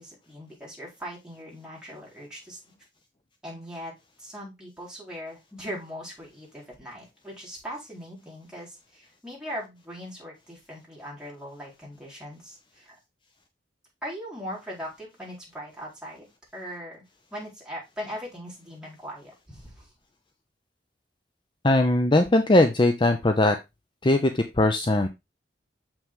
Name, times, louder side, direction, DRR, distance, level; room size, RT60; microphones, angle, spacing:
voice 1, 0.0-2.7 3.4-3.9 4.2-12.9 14.0-16.3 16.5-17.0 17.3-19.9, equal, 5° right, -5 dB, 4.3 m, -40 dB
voice 2, 21.6-23.6 24.0-25.1, left 2 dB, 30° left, 7 dB, 0.6 m, -20 dB
7.0 x 5.9 x 3.6 m, 0.22 s
head